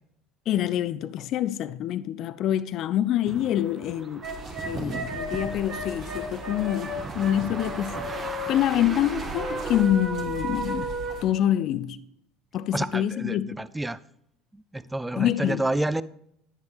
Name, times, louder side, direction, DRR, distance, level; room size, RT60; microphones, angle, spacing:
voice 1, 0.5-4.3 4.6-8.0 8.5-10.9 11.2-12.0 12.5-13.6 15.2-15.6, left 11 dB, 50° left, 0.4 m, -26 dB
sound 1, 3.3-9.8, right 3 dB, 25° right, 1.3 m, -38 dB
sound 2, 4.2-11.2, right 1 dB, 45° right, 2.7 m, -34 dB
voice 2, 12.7-14.0 14.5-16.0, right 1 dB, 10° right, 0.4 m, -29 dB
10.5 x 9.1 x 3.4 m
hypercardioid pair, 70°, 0 cm